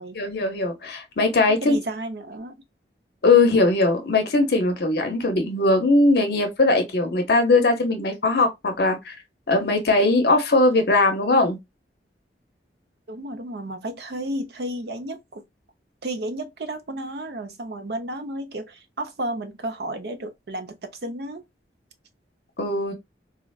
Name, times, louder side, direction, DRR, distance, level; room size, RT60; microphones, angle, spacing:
voice 1, 0.2-1.8 3.2-9.2 9.5-11.6 22.6-22.9, left 2 dB, 60° left, 0.7 m, -20 dB
voice 2, 1.5-2.6 13.1-15.4 16.0-21.4, right 1 dB, 65° right, 0.6 m, -32 dB
3.7 x 2.1 x 2.3 m
head